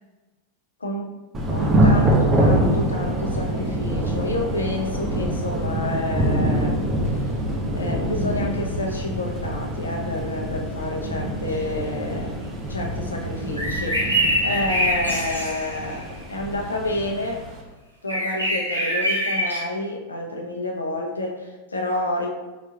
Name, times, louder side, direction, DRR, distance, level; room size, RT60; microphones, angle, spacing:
voice 1, 0.8-1.2 1.5-7.3 7.7-12.4 12.7-17.4 18.0-22.3, left 2 dB, 75° left, 0 dB, 0.7 m, -29 dB
Thunder / Rain, 1.3-17.6, right 1 dB, 20° right, 0.8 m, -25 dB
sound 1, 11.5-11.6 13.6-16.0 18.1-19.6, equal, 90° right, 0.9 m, -24 dB
4.7 x 4.5 x 2.3 m, 1.2 s
figure-of-eight pair, 90°, 0 cm